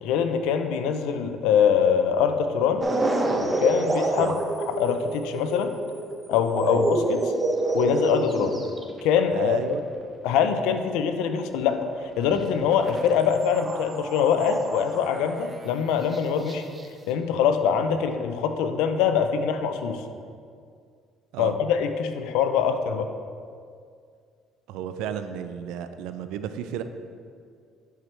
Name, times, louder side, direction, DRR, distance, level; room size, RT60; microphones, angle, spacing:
voice 1, 0.0-2.8 3.4-4.3 4.7-5.7 6.3-7.3 7.7-8.6 9.0-9.6 10.2-11.9 12.2-16.6 17.1-20.0 21.4-23.1, left 7 dB, 85° left, 8 dB, 0.5 m, -23 dB
sound 1, 2.8-11.9 12.2-13.1 13.3-15.4 16.1-16.2 16.5-16.9, right 2 dB, 25° right, 0.8 m, -28 dB
voice 2, 9.3-9.8 21.3-21.5 24.7-26.8, right 9 dB, 80° right, 10 dB, 0.4 m, -33 dB
10.0 x 4.7 x 3.3 m, 2.2 s
supercardioid pair, 90°, 0 cm